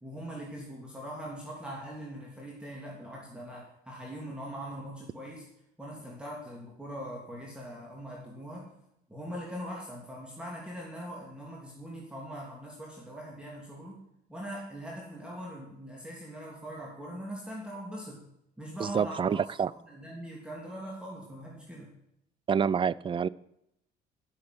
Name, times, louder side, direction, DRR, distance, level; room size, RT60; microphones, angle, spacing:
voice 1, 0.0-5.4 5.8-8.7 9.1-14.0 14.3-18.2 18.6-19.4 19.9-21.9, equal, 5° right, -3 dB, 3.0 m, -41 dB
voice 2, 18.8-19.7 22.5-23.3, right 7 dB, 30° right, 21 dB, 0.4 m, -27 dB
12.5 x 8.7 x 6.1 m, 0.77 s
cardioid pair, 110°, 17 cm